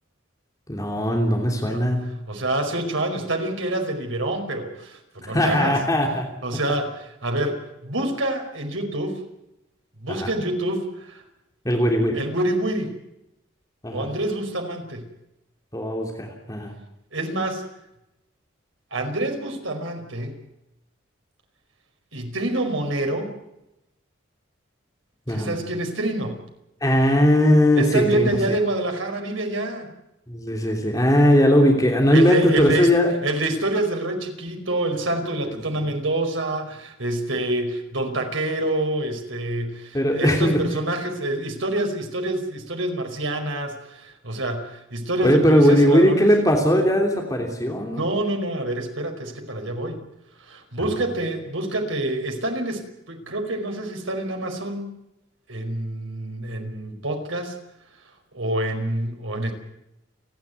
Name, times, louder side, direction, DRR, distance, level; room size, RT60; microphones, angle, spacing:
voice 1, 0.7-2.1 5.3-6.3 10.1-10.3 11.6-12.2 13.8-14.1 15.7-16.7 25.3-25.6 26.8-28.6 30.3-33.1 35.5-35.9 39.9-40.6 45.2-48.1 50.8-50.9, equal, 15° left, 1 dB, 3.1 m, -19 dB
voice 2, 2.3-5.7 6.4-9.2 10.0-11.2 12.1-12.9 13.9-15.0 17.1-17.6 18.9-20.3 22.1-23.3 25.3-26.3 27.7-29.9 32.1-32.9 33.2-46.3 47.9-50.0 50.5-52.8 53.1-54.9 55.5-57.5 58.3-59.5, right 1 dB, 90° right, 4 dB, 5.0 m, -27 dB
30.0 x 11.0 x 9.5 m, 0.87 s
head